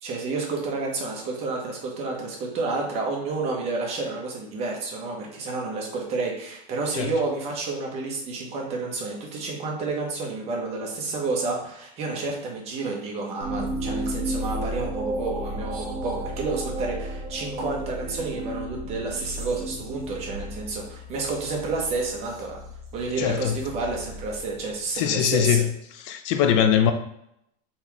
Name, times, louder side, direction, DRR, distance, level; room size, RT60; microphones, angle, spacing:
voice 1, 0.0-22.6 22.9-25.6, right 3 dB, 30° right, -1 dB, 1.0 m, -30 dB
sound 1, 13.4-25.0, right 1 dB, 65° right, 1.1 m, -34 dB
voice 2, 23.2-23.6 25.0-25.6 25.9-26.9, left 9 dB, 50° left, 8 dB, 0.4 m, -21 dB
4.1 x 3.0 x 3.5 m, 0.76 s
supercardioid pair, 155°, 20 cm